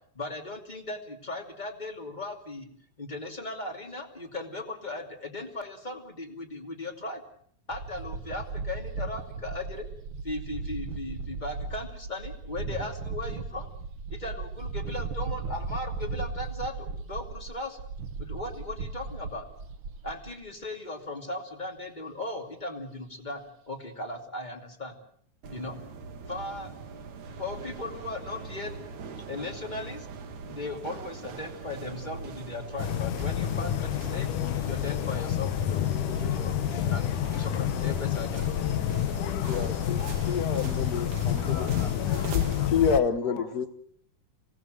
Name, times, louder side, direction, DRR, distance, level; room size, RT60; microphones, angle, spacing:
voice 1, 0.1-2.7 3.0-7.2 7.7-9.9 10.2-13.7 14.1-17.8 18.2-19.4 20.0-25.0 25.5-25.8 26.3-26.7 27.4-28.7 29.3-30.1 30.5-34.3 34.6-35.8 36.2-37.1 37.4-38.8, left 2 dB, 15° left, 4 dB, 2.3 m, -37 dB
sound 1, 7.7-20.4, right 4 dB, 55° right, 1.9 m, -36 dB
sound 2, 25.4-42.7, right 4 dB, 70° right, 3.0 m, -41 dB
sound 3, 32.8-43.0, left 11 dB, 90° left, 2.7 m, -28 dB
voice 2, 39.5-40.0 40.3-41.6 42.7-43.7, left 6 dB, 50° left, 11 dB, 1.1 m, -28 dB
voice 3, 41.4-43.7, left 3 dB, 70° left, 2 dB, 5.4 m, -45 dB
26.0 x 18.0 x 7.7 m, 0.64 s
omnidirectional pair, 3.5 m